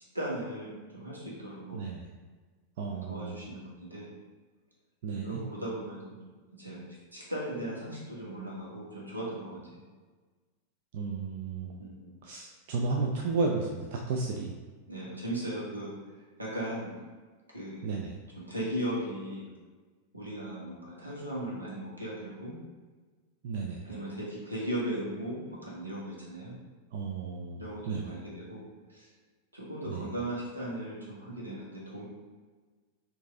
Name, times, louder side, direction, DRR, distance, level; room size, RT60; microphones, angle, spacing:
voice 1, 0.1-1.8 2.8-4.1 5.1-6.2 6.5-9.6 11.8-12.2 14.9-15.9 16.4-16.9 17.5-17.9 18.4-19.5 20.1-22.6 23.8-26.6 27.6-29.1 29.5-32.0, right 1 dB, 80° right, -5 dB, 1.3 m, -37 dB
voice 2, 1.7-2.1 2.8-3.4 5.0-5.4 10.9-11.8 12.2-14.5 17.8-18.2 23.4-23.8 26.9-27.6 27.9-28.1 29.9-30.0, right 4 dB, 50° right, 1 dB, 0.4 m, -33 dB
4.5 x 2.7 x 3.7 m, 1.4 s
figure-of-eight pair, 90°, 0 cm